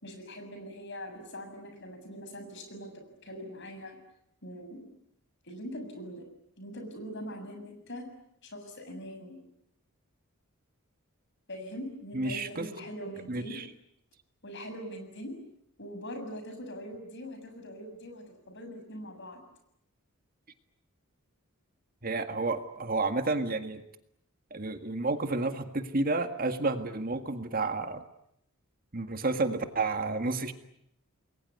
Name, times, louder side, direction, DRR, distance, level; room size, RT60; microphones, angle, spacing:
voice 1, 0.0-2.9 3.2-4.0 4.4-4.9 5.4-6.3 6.6-8.0 8.4-9.4 11.5-13.6 14.4-15.4 15.8-19.4, equal, 55° left, 6 dB, 7.1 m, -42 dB
voice 2, 12.1-12.7 13.3-13.7 22.0-23.8 24.5-28.0 28.9-30.5, right 3 dB, 40° right, 8 dB, 1.8 m, -30 dB
29.0 x 22.0 x 9.6 m, 0.76 s
head